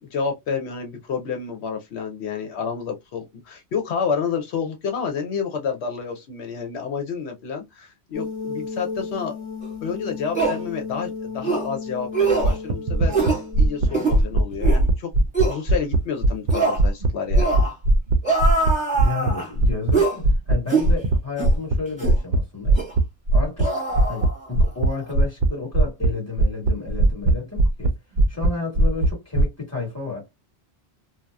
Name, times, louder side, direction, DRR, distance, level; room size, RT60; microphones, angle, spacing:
voice 1, 0.0-9.4 9.8-15.1 15.5-17.5, left 6 dB, 80° left, 0.9 m, -29 dB
sound 1, 8.1-14.0, left 5 dB, 35° left, 0.7 m, -34 dB
sound 2, 9.6-9.7 10.3-10.6 11.4-11.7 12.1-12.6 13.1-13.4 13.9-14.2 14.6-14.8 15.3-15.6 16.5-16.8 17.4-17.7 18.2-19.5 19.9-20.2 20.7-20.9 21.4-21.5 22.0-22.2 22.8-22.9 23.6-24.7 24.9-25.1, right 4 dB, 5° right, 1.3 m, -23 dB
sound 3, 12.4-16.5 16.8-19.9 20.2-20.6 20.8-21.2 21.4-21.8 22.0-22.4 22.7-23.0 23.3-23.6 24.0-24.3 24.6-24.9 25.1-25.5 25.7-26.1 26.4-27.3 27.6-27.9 28.2-28.5 28.8-29.4, right 2 dB, 60° right, 0.6 m, -18 dB
voice 2, 18.9-22.8 23.3-23.7 24.1-27.9 28.3-30.3, left 4 dB, 15° left, 1.5 m, -31 dB
2.7 x 2.1 x 2.2 m
omnidirectional pair, 1.1 m